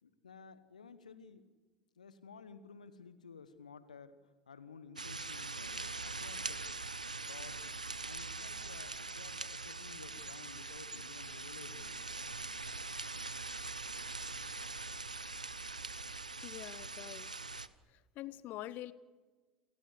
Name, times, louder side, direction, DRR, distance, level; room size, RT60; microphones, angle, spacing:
voice 1, 0.0-1.4 2.0-6.7 7.1-7.6 8.0-12.4, left 5 dB, 80° left, 13 dB, 1.3 m, -54 dB
sound 1, 5.0-17.7, right 3 dB, 85° right, 0.6 m, -42 dB
voice 2, 16.4-17.3 17.9-18.9, left 14 dB, 45° left, 19 dB, 0.9 m, -45 dB
29.0 x 14.5 x 8.3 m, 1.3 s
figure-of-eight pair, 70°, 4 cm